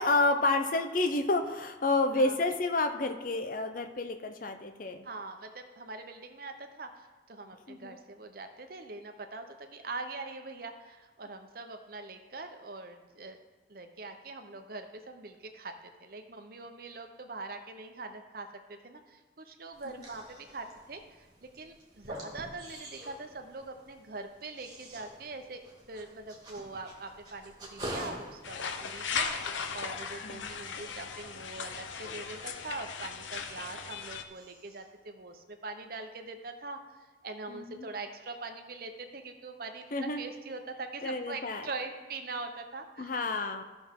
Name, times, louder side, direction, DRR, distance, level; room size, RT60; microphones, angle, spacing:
voice 1, 0.0-5.1 7.7-8.0 30.2-30.5 37.5-37.9 39.9-40.2 41.0-41.7 43.0-43.6, left 2 dB, 45° left, 7 dB, 0.7 m, -29 dB
voice 2, 2.1-2.5 5.0-13.4 13.7-25.6 25.9-43.1, right 3 dB, 50° right, 6 dB, 0.8 m, -43 dB
sound 1, 19.7-34.0 34.3-35.0, right 1 dB, 20° right, 1.8 m, -47 dB
sound 2, 28.4-34.2, left 6 dB, 80° left, 0.7 m, -37 dB
14.0 x 6.0 x 3.7 m, 1.3 s
head